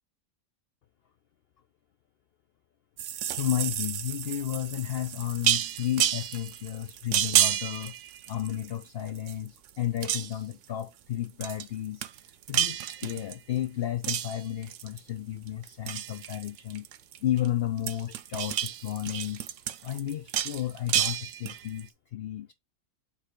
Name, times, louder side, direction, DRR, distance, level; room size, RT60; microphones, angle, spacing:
sound 1, 3.0-8.8 9.1-9.7 10.0-10.5 11.4-11.7 12.0-13.6 14.0-15.1 15.5-17.5 17.8-21.8, right 11 dB, 70° right, 0.9 m, -30 dB
voice 1, 3.3-7.9 8.3-12.1 12.5-16.9 17.2-19.4 19.8-22.5, left 12 dB, 60° left, 0.7 m, -32 dB
7.3 x 3.5 x 4.5 m
omnidirectional pair, 1.4 m